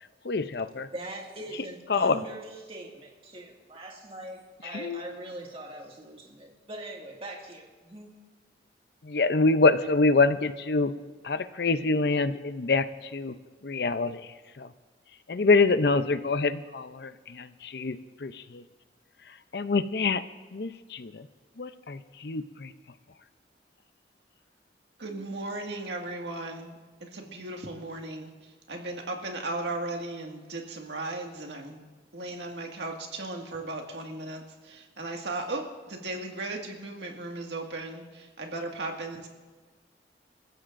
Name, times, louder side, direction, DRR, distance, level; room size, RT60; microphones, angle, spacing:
voice 1, 0.2-0.9 1.9-2.2 4.6-5.0 9.0-10.9 11.2-13.3 13.6-14.7 15.3-18.6 19.3-20.2 20.5-21.3 21.6-22.7, left 3 dB, 60° left, 12 dB, 0.6 m, -26 dB
voice 2, 0.9-8.1, right 1 dB, 30° right, 0 dB, 2.1 m, -42 dB
voice 3, 25.0-39.3, right 2 dB, 75° right, 1 dB, 1.9 m, -36 dB
27.0 x 14.5 x 2.6 m, 1.4 s
head